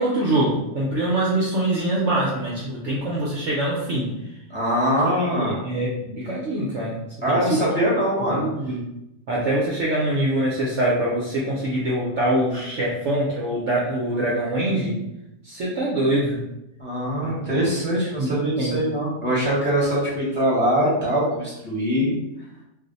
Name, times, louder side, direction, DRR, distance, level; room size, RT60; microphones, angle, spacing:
voice 1, 0.0-4.4 5.0-7.0 7.3-7.6 8.2-8.8 9.3-14.9 15.4-16.4 17.2-17.3 17.9-18.7, right 1 dB, 65° right, -5 dB, 0.7 m, -24 dB
voice 2, 4.5-5.6 7.2-8.4 16.8-22.2, equal, 10° left, -6 dB, 0.8 m, -22 dB
2.6 x 2.1 x 3.9 m, 0.89 s
omnidirectional pair, 1.7 m